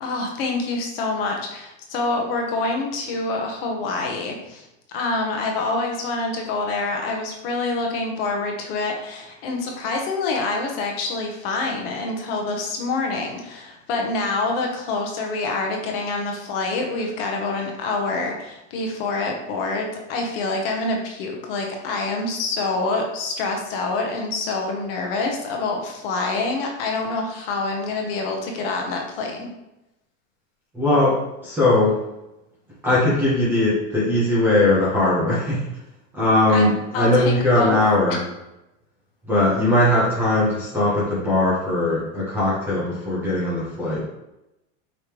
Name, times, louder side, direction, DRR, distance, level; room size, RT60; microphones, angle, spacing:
voice 1, 0.0-29.5 36.5-37.8 38.1-38.2, left 3 dB, 50° left, 2 dB, 0.8 m, -26 dB
voice 2, 30.7-32.0 32.8-35.6 36.1-38.2 39.3-44.0, left 1 dB, 5° right, -8 dB, 0.6 m, -20 dB
5.1 x 3.1 x 2.9 m, 0.92 s
supercardioid pair, 180°, 38 cm